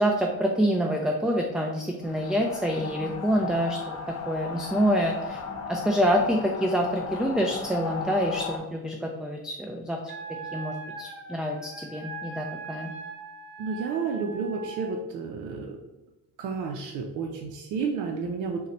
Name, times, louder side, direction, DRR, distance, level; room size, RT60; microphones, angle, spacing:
voice 1, 0.0-4.0 4.3-5.4 5.7-10.0 10.5-12.9, equal, ahead, 1 dB, 0.3 m, -26 dB
sound 1, 2.0-8.6, left 5 dB, 55° left, 0.8 m, -36 dB
Wind instrument woodwind instrument, 10.1-14.9, right 4 dB, 45° right, 0.9 m, -40 dB
voice 2, 13.6-15.8 16.4-18.7, right 5 dB, 85° right, 1 dB, 0.5 m, -31 dB
3.8 x 2.1 x 4.1 m, 1.0 s
cardioid pair, 90°, 30 cm